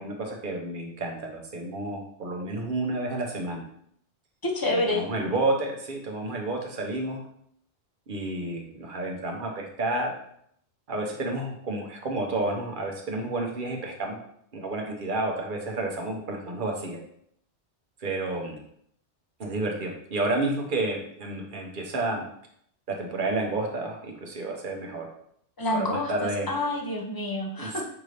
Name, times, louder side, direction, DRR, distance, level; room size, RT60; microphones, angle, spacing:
voice 1, 0.0-3.6 4.7-7.2 8.1-10.1 10.9-14.2 14.5-17.0 18.0-18.6 19.4-22.2 23.0-25.1 25.7-26.5 27.6-27.8, right 2 dB, 50° right, 1 dB, 0.9 m, -30 dB
voice 2, 4.4-5.0 25.6-27.8, left 2 dB, 25° left, 0 dB, 0.6 m, -28 dB
5.8 x 2.7 x 3.2 m, 0.70 s
omnidirectional pair, 1.1 m